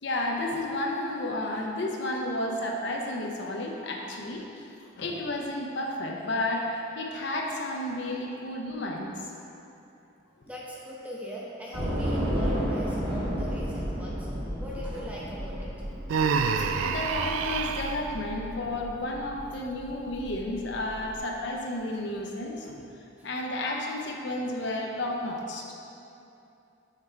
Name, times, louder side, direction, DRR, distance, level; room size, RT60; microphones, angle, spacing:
voice 1, 0.0-4.4 5.0-9.1 10.4-10.5 16.5-22.8 23.2-25.6, left 1 dB, 65° left, 0 dB, 0.7 m, -32 dB
voice 2, 10.5-14.3 14.6-15.7 16.0-16.1 23.2-23.3, equal, 5° right, -5 dB, 0.7 m, -40 dB
Train / Subway metro underground, 11.7-21.2, equal, 60° right, 1.3 m, -33 dB
Human voice, 16.1-18.0, right 5 dB, 90° right, 0.3 m, -27 dB
5.8 x 4.5 x 4.5 m, 2.7 s
head